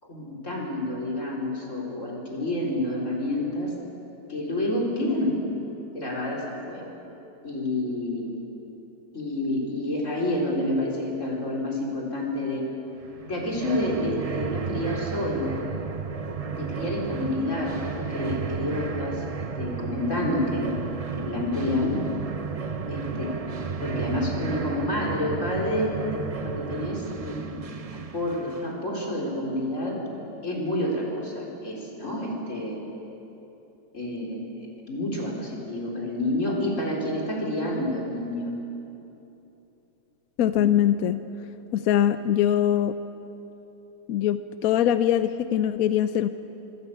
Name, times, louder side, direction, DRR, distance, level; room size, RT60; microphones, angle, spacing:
voice 1, 0.0-3.7 4.3-5.3 5.9-6.9 7.4-8.3 9.1-12.7 13.3-15.6 16.5-19.2 19.5-20.7 21.2-22.0 22.9-23.3 23.8-27.6 27.9-32.8 33.9-38.5, left 1 dB, 45° left, -2 dB, 4.5 m, -29 dB
sound 1, 13.0-28.8, right 5 dB, 40° right, 0.5 m, -33 dB
voice 2, 40.4-41.2 41.7-42.9 44.1-46.3, left 10 dB, 65° left, 11 dB, 1.0 m, -22 dB
24.0 x 16.5 x 8.5 m, 3.0 s
omnidirectional pair, 1.8 m